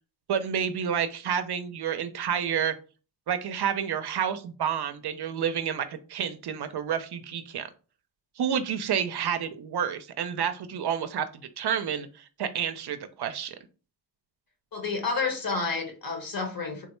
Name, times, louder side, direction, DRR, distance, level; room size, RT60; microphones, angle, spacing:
voice 1, 0.3-2.7 3.3-7.7 8.4-11.3 11.6-13.6, right 8 dB, 60° right, 0.5 m, -29 dB
voice 2, 14.7-16.9, left 4 dB, 50° left, 1.3 m, -30 dB
3.5 x 2.1 x 3.0 m
cardioid pair, 55°, 46 cm